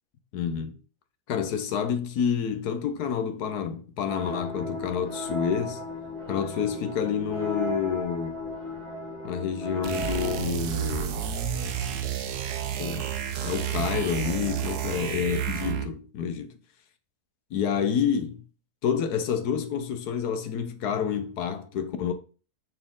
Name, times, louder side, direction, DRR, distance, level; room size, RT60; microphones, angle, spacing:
voice 1, 0.3-0.8 1.3-5.8 6.3-8.4 9.2-11.3 12.8-13.1 13.4-16.6 17.5-18.4 18.8-22.1, left 7 dB, 75° left, 1.3 m, -28 dB
sound 1, 4.1-10.4, left 1 dB, 40° left, 2.2 m, -35 dB
sound 2, 9.8-16.0, right 9 dB, 75° right, 1.3 m, -30 dB
9.2 x 4.3 x 3.8 m
omnidirectional pair, 1.7 m